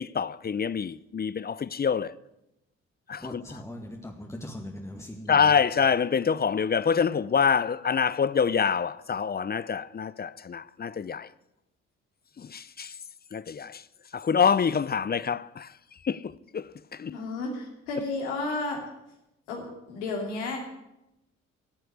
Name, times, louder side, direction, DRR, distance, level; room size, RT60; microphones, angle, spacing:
voice 1, 0.0-2.1 3.1-3.4 5.3-11.3 12.4-13.0 13.3-13.8 14.1-15.7 16.0-17.1, left 6 dB, 30° left, 0.6 m, -26 dB
voice 2, 3.2-5.5, left 1 dB, 10° left, 2.1 m, -40 dB
voice 3, 17.1-18.8 19.5-20.6, left 3 dB, 85° left, 2.9 m, -32 dB
15.0 x 7.9 x 9.8 m
hypercardioid pair, 45°, 34 cm